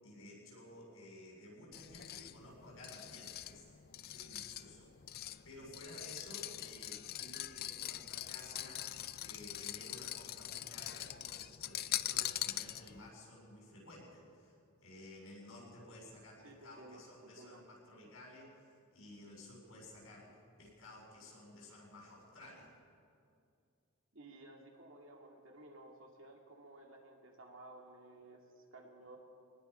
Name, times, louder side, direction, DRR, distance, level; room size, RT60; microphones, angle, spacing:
voice 1, 0.0-3.7 4.0-14.6 14.8-22.7, left 1 dB, 70° left, -3 dB, 7.3 m, -54 dB
sound 1, 1.7-13.1, left 13 dB, 45° left, 0.5 m, -43 dB
voice 2, 16.4-17.6 24.1-29.2, right 2 dB, 60° right, 1 dB, 2.6 m, -55 dB
24.0 x 19.5 x 5.7 m, 2.4 s
head